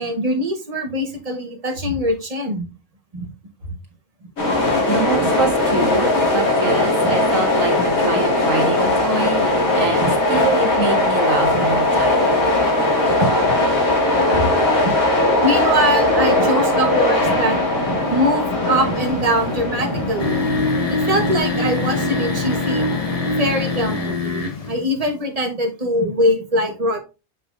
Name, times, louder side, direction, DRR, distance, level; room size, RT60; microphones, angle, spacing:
voice 1, 0.0-2.7 3.1-3.3 7.0-7.1 9.8-10.1 13.2-13.3 14.8-15.0 15.4-17.6 18.1-20.4 21.1-22.8 23.4-27.0, equal, 30° right, 3 dB, 1.3 m, -22 dB
sound 1, 4.4-24.1, left 2 dB, 80° left, 2.4 m, -19 dB
voice 2, 4.9-9.5 9.8-12.3 14.3-14.5, right 3 dB, 70° right, 1 dB, 2.0 m, -25 dB
sound 2, 20.2-24.8, left 2 dB, 30° left, 0.9 m, -23 dB
7.0 x 5.5 x 2.6 m, 0.29 s
omnidirectional pair, 1.4 m